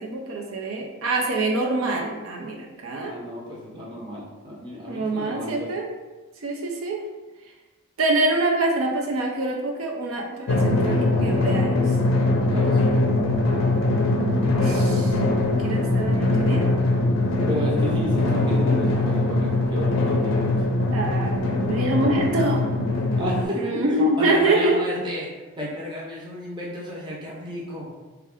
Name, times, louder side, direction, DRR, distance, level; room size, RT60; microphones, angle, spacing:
voice 1, 0.0-3.2 4.9-5.9 6.4-7.0 8.0-11.8 14.6-15.2 15.5-16.6 20.9-22.6 23.5-24.8, right 2 dB, 75° right, 1 dB, 0.4 m, -25 dB
voice 2, 3.0-5.7 12.5-13.1 17.5-20.6 23.2-25.3 25.6-27.9, equal, 20° right, -5 dB, 0.7 m, -32 dB
Drum, 10.5-23.4, left 2 dB, 70° left, 0.5 m, -22 dB
3.2 x 2.4 x 3.5 m, 1.2 s
head